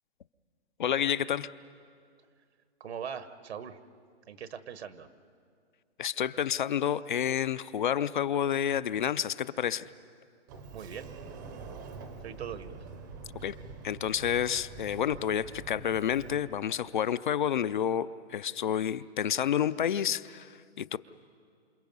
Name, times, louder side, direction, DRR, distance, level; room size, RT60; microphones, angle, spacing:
voice 1, 0.8-1.5 6.0-9.9 13.3-13.6 13.8-21.0, left 9 dB, 45° left, 16 dB, 0.5 m, -29 dB
voice 2, 2.8-3.8 4.3-5.1 10.7-11.1 12.2-12.8, right 8 dB, 70° right, 11 dB, 1.3 m, -40 dB
Sliding door, 10.5-16.4, right 4 dB, 20° right, 0.7 m, -45 dB
27.5 x 27.5 x 5.4 m, 2.3 s
hypercardioid pair, 170°, 34 cm